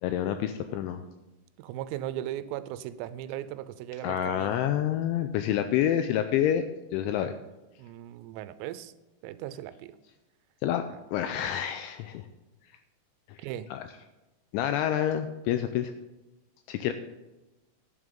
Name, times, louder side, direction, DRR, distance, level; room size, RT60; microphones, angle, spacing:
voice 1, 0.0-1.0 4.0-6.6 6.9-7.3 10.6-10.8 11.1-12.2 13.3-13.4 13.7-13.8 14.5-15.9 16.7-16.9, left 10 dB, 85° left, 8 dB, 2.7 m, -28 dB
voice 2, 1.6-4.6 7.8-8.9 9.2-10.0 10.9-11.0 13.4-13.7, right 12 dB, 90° right, 14 dB, 3.3 m, -37 dB
11.5 x 11.0 x 3.8 m, 1.1 s
omnidirectional pair, 6.0 m